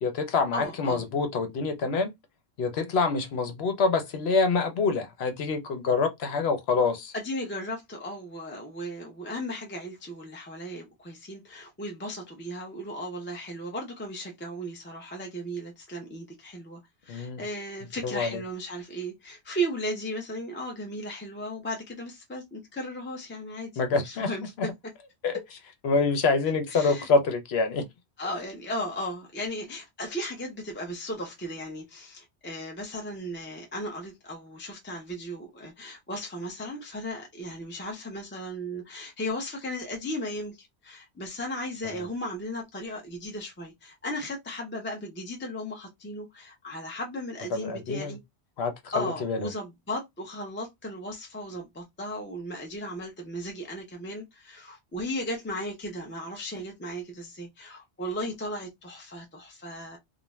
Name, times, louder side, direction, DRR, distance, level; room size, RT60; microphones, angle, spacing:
voice 1, 0.0-2.1 2.6-7.1 17.1-17.4 18.0-18.4 23.8-24.3 24.6-24.7 25.2-25.6 25.8-27.8 41.8-42.1 47.5-48.2 48.6-49.5, left 4 dB, 75° left, 1.0 m, -26 dB
voice 2, 0.5-1.0 7.1-24.4 26.7-27.1 28.2-48.2 48.9-60.0, equal, 15° left, 0.6 m, -36 dB
2.4 x 2.2 x 3.1 m
omnidirectional pair, 1.1 m